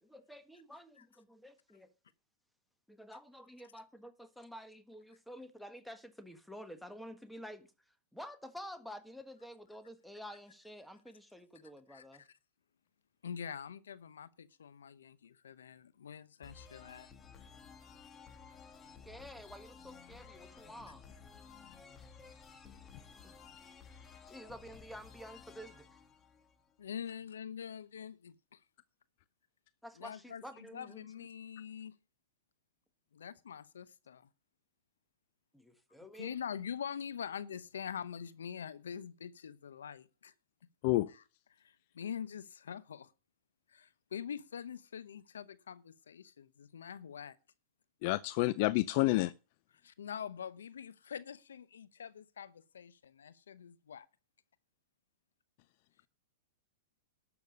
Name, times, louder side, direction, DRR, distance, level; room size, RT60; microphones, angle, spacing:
voice 1, 0.0-1.9 2.9-7.7 8.1-12.2 19.0-21.0 23.2-23.4 24.3-26.0 29.8-31.3 35.5-36.4, equal, ahead, 1.5 m, -50 dB
voice 2, 11.9-12.3 13.2-17.1 26.8-28.6 30.0-30.4 30.7-32.0 33.1-34.3 36.2-40.3 41.1-41.2 41.6-43.1 43.7-47.4 49.8-54.1, left 8 dB, 85° left, 0.8 m, -44 dB
sound 1, 16.4-27.0, left 6 dB, 25° left, 1.8 m, -55 dB
voice 3, 48.0-49.3, left 19 dB, 50° left, 0.5 m, -29 dB
12.0 x 6.9 x 6.5 m
hypercardioid pair, 120°, 0 cm